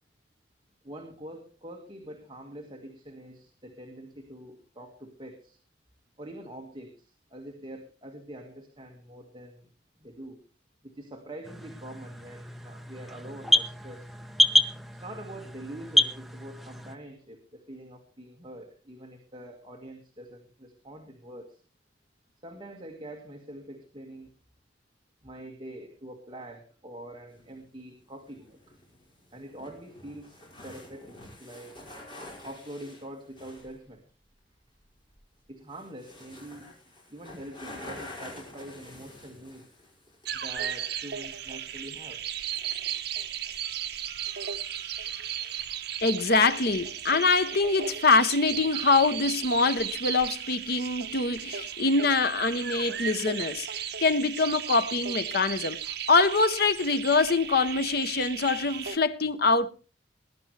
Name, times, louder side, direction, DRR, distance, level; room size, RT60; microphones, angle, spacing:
voice 1, 0.8-5.6 6.2-9.7 10.0-10.4 10.8-14.1 14.9-21.6 22.4-24.3 25.2-28.7 29.3-30.4 30.6-31.8 32.4-34.0 35.5-36.7 37.1-39.7 40.3-42.2, right 1 dB, 25° right, 1.8 m, -44 dB
sound 1, 11.4-17.0, left 1 dB, ahead, 0.6 m, -28 dB
sound 2, 27.3-33.8 35.1-35.2 35.6-40.3 40.6-40.7 41.4-41.8, left 1 dB, 25° left, 5.4 m, -47 dB
sound 3, 40.3-59.0, right 9 dB, 60° right, 1.1 m, -35 dB
voice 2, 46.0-55.8 56.1-59.7, left 3 dB, 55° left, 0.9 m, -24 dB
20.5 x 11.5 x 3.3 m
head